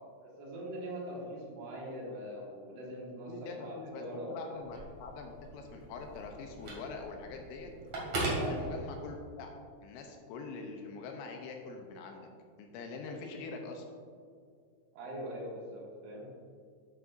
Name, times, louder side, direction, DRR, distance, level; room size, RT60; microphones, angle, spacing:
voice 1, 0.2-4.6 8.2-8.5 14.9-16.3, equal, 80° right, -5 dB, 4.3 m, -42 dB
voice 2, 3.3-7.7 8.3-9.5 9.8-12.3 12.6-13.9, left 4 dB, 80° left, 3 dB, 2.8 m, -44 dB
Telephone, 4.6-9.3, right 2 dB, 45° right, 2.4 m, -39 dB
11.0 x 7.3 x 2.5 m, 2.2 s
omnidirectional pair, 5.5 m